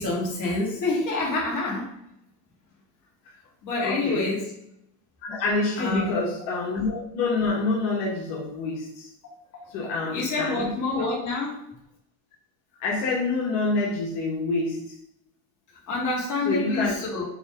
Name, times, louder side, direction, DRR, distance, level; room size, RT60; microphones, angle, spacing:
voice 1, 0.0-1.9 3.6-4.4 5.8-6.1 10.1-11.6 15.9-17.2, left 2 dB, 45° left, -3 dB, 2.8 m, -27 dB
voice 2, 3.8-4.3 5.2-9.1 9.7-10.7 12.8-15.0 16.5-17.0, left 3 dB, 85° left, -3 dB, 1.8 m, -27 dB
7.0 x 3.4 x 5.2 m, 0.77 s
cardioid pair, 135°, 40 cm